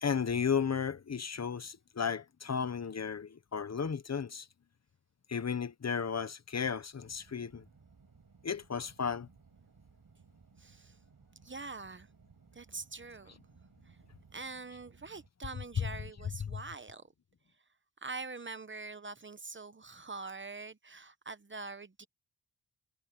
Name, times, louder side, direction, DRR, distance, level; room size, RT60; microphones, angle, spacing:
voice 1, 0.0-4.5 5.3-7.7 8.4-9.3 15.8-15.9 16.4-16.6, left 6 dB, 40° left, 0.9 m, -34 dB
sound 1, 6.9-15.3, right 5 dB, 55° right, 6.3 m, -61 dB
voice 2, 10.6-11.0 11.4-12.1 12.5-13.4 13.8-14.0 14.3-17.0 18.0-22.1, right 3 dB, 30° right, 0.9 m, -44 dB
wide cardioid pair, 155°, 41 cm